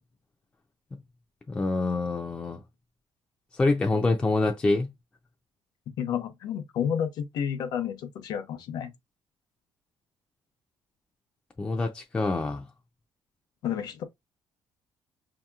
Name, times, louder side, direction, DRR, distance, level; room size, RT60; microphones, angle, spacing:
voice 1, 1.5-2.6 3.5-4.9 11.6-12.7, left 3 dB, 15° left, 0.4 m, -26 dB
voice 2, 6.0-8.9 13.6-14.0, left 8 dB, 60° left, 0.8 m, -30 dB
5.3 x 2.8 x 2.3 m
cardioid pair, 175°, 8 cm